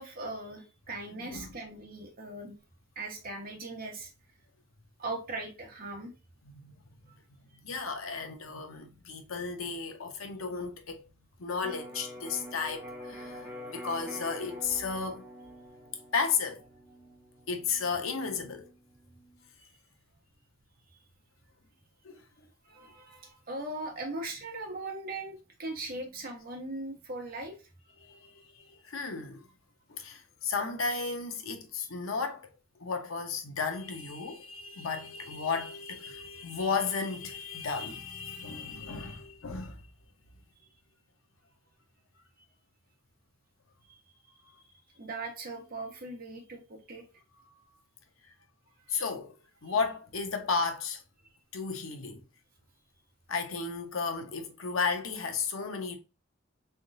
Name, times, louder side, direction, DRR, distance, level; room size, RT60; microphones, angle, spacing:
voice 1, 0.0-2.5 2.9-4.1 5.0-6.1 19.6-19.7 22.6-27.6 45.0-47.0 48.9-49.0 49.7-49.8, right 2 dB, 45° right, 1.3 m, -39 dB
voice 2, 1.2-1.5 6.4-6.7 7.6-11.0 11.4-15.3 16.1-16.6 17.5-18.7 22.0-22.2 28.0-29.5 29.9-32.5 32.8-39.9 48.9-49.4 49.6-51.0 51.5-52.2 53.3-56.0, left 5 dB, 85° left, 0.8 m, -34 dB
Electric guitar, 11.6-19.4, left 1 dB, 10° right, 1.3 m, -46 dB
3.8 x 3.5 x 2.6 m
head